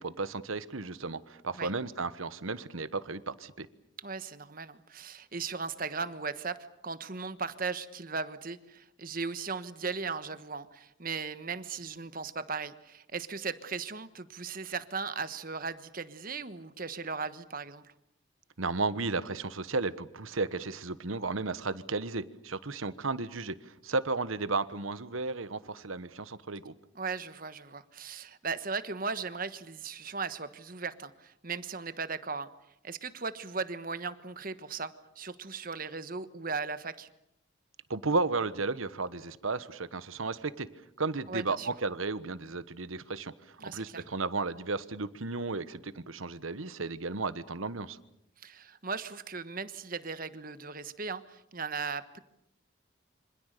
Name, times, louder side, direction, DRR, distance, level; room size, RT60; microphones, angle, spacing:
voice 1, 0.0-3.7 18.6-23.5 23.8-26.7 37.9-40.7 41.0-43.3 43.6-48.0, right 3 dB, 85° right, 14 dB, 1.3 m, -33 dB
voice 2, 4.0-17.9 26.9-32.5 32.8-37.1 41.3-41.7 43.6-44.0 48.4-52.2, right 4 dB, 45° right, 12 dB, 1.3 m, -37 dB
27.0 x 25.5 x 6.7 m, 0.78 s
head